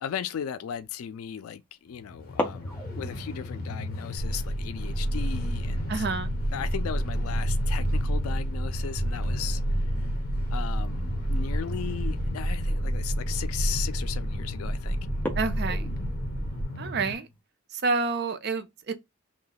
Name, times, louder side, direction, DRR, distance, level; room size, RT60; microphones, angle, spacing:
voice 1, 0.0-6.1 6.5-10.1 10.5-15.1, left 9 dB, 85° left, 0.3 m, -37 dB
sound 1, 0.8-1.0 2.2-8.7 8.9-9.0 9.4-9.8 10.8-11.0 11.6-11.7 12.2-12.3 12.7-13.0 13.6-14.0 14.4-14.5 15.1-17.4, left 1 dB, 10° left, 0.4 m, -40 dB
Train, 1.9-17.1, left 1 dB, 45° left, 0.8 m, -36 dB
sound 2, 4.2-16.6, right 1 dB, 80° right, 1.1 m, -29 dB
voice 2, 5.9-6.3 15.4-15.9 16.8-17.3 17.7-18.9, right 4 dB, 50° right, 0.5 m, -28 dB
2.9 x 2.2 x 3.9 m
head